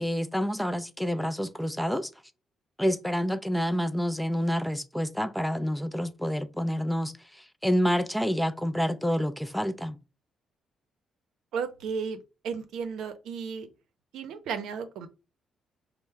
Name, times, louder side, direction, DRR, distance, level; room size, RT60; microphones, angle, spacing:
voice 1, 0.0-2.1 2.8-7.1 7.6-10.0, equal, 5° left, 0.4 m, -28 dB
voice 2, 11.5-12.2 12.4-13.7 14.1-15.1, right 6 dB, 80° right, 0.6 m, -34 dB
4.4 x 2.1 x 3.2 m
cardioid pair, 90°, 0 cm